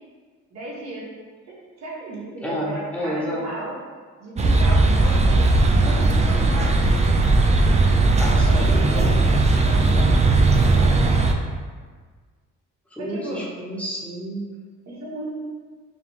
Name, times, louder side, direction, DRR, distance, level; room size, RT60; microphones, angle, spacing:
voice 1, 0.5-1.1 1.5-3.8 4.2-6.7 8.1-9.2 9.6-11.2 13.0-13.4 14.9-15.3, right 1 dB, 60° right, -6 dB, 1.4 m, -35 dB
voice 2, 2.4-3.4 8.2-9.2 12.9-14.4, equal, 5° left, -5 dB, 1.0 m, -30 dB
sound 1, 4.4-11.3, right 2 dB, 25° right, 0.4 m, -17 dB
4.9 x 2.2 x 3.5 m, 1.6 s
cardioid pair, 90°, 30 cm